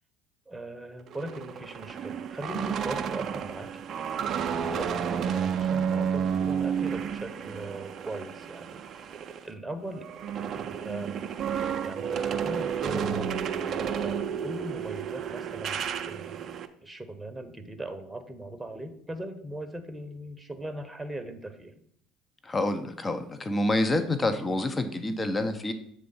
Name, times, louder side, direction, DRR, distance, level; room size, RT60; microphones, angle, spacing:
voice 1, 0.5-3.8 4.2-10.1 10.5-11.3 11.8-16.6 16.8-21.8, right 1 dB, 10° right, 8 dB, 0.9 m, -40 dB
sound 1, 1.1-9.5 9.8-16.7, right 7 dB, 50° right, 0.5 m, -31 dB
voice 2, 22.5-25.7, left 2 dB, 25° left, 8 dB, 0.8 m, -27 dB
7.5 x 3.4 x 5.5 m, 0.70 s
hypercardioid pair, 65°, 0 cm